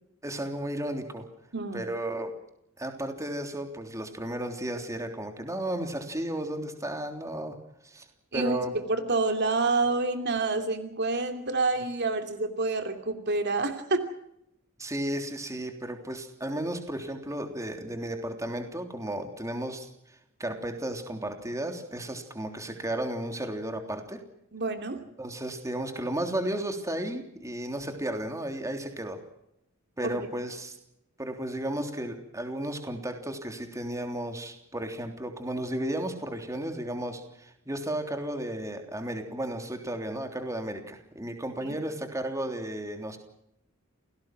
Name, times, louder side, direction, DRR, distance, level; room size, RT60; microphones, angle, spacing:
voice 1, 0.2-1.2 1.7-2.3 2.8-7.6 7.8-8.1 8.3-8.7 14.8-19.9 20.4-24.2 25.2-29.2 30.0-30.8 31.2-43.2, right 1 dB, 15° right, 5 dB, 3.4 m, -34 dB
voice 2, 1.5-1.8 8.3-14.1 24.5-25.0 30.0-30.2, right 3 dB, 55° right, 6 dB, 2.9 m, -28 dB
28.5 x 19.0 x 6.2 m, 0.78 s
head